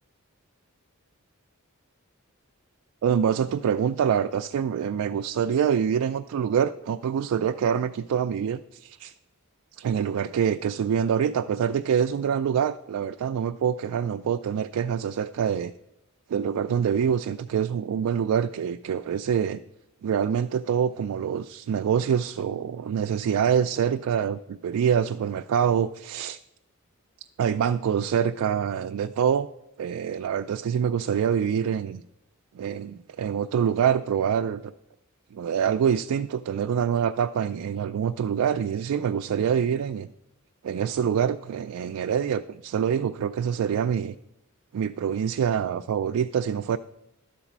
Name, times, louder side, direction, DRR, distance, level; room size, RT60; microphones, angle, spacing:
voice 1, 3.0-9.1 9.8-15.7 16.3-19.6 20.0-26.4 27.4-29.5 29.8-32.0 32.5-34.7 35.3-40.1 40.6-44.1 44.7-46.8, right 8 dB, 75° right, 7 dB, 0.3 m, -25 dB
11.0 x 4.0 x 7.2 m, 0.88 s
head